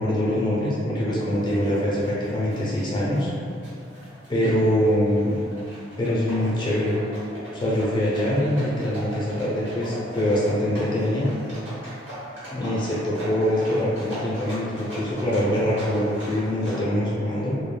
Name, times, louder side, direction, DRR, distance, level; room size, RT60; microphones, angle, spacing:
voice 1, 0.0-3.3 4.3-5.4 6.0-6.9 7.5-11.3 12.5-17.6, equal, 25° left, -7 dB, 0.4 m, -24 dB
sound 1, 1.3-16.8, right 1 dB, 85° right, 1.1 m, -39 dB
2.2 x 2.1 x 3.1 m, 2.5 s
head